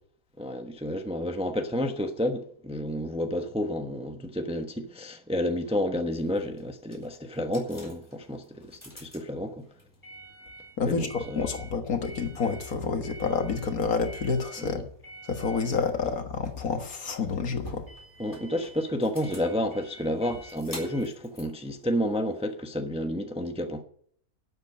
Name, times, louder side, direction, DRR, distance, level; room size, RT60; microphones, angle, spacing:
voice 1, 0.4-9.7 10.8-11.5 14.6-14.7 18.2-23.8, equal, 5° right, 0.8 m, -30 dB
sound 1, 6.1-22.5, right 1 dB, 10° left, 3.9 m, -48 dB
voice 2, 10.8-14.9 15.2-17.9, left 5 dB, 65° left, 2.0 m, -29 dB
12.0 x 8.2 x 9.2 m
omnidirectional pair, 1.6 m